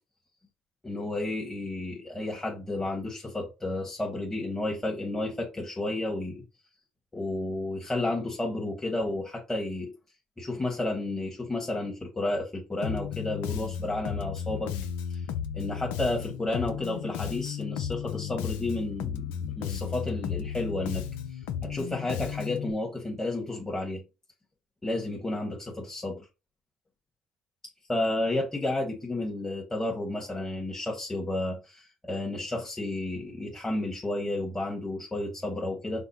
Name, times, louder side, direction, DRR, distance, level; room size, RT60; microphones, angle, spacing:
voice 1, 0.8-6.4 7.1-9.9 10.4-14.7 15.1-15.3 15.5-21.0 21.3-24.0 24.8-26.3 27.9-36.0, left 2 dB, 20° left, 1.4 m, -32 dB
Bass guitar, 12.8-22.7, left 8 dB, 80° left, 0.5 m, -34 dB
5.2 x 2.0 x 4.1 m
hypercardioid pair, 55°, 2 cm